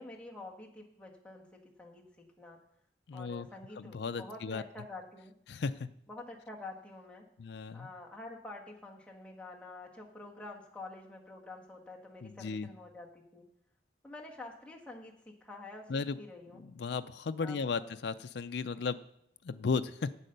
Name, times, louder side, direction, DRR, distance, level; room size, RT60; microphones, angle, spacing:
voice 1, 0.0-2.6 3.1-5.3 6.1-7.3 7.7-13.4 14.0-16.6 17.4-17.9, left 2 dB, 5° left, -2 dB, 1.5 m, -48 dB
voice 2, 3.1-3.5 3.8-4.6 5.5-5.9 7.4-7.9 12.2-12.7 15.9-16.2 16.6-19.0 19.4-20.1, left 4 dB, 70° left, 10 dB, 0.4 m, -35 dB
8.4 x 8.4 x 6.6 m, 0.71 s
head